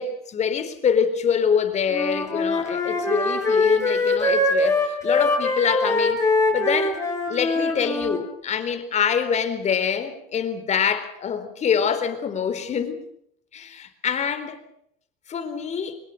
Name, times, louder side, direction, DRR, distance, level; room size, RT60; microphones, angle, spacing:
voice 1, 0.0-6.2 6.5-7.0 7.3-13.0 13.5-14.6 15.3-16.0, left 7 dB, 40° left, 4.1 m, -25 dB
Wind instrument woodwind instrument, 1.9-8.2, left 2 dB, 15° left, 7.0 m, -22 dB
24.5 x 22.0 x 6.6 m
cardioid pair, 115°, 19 cm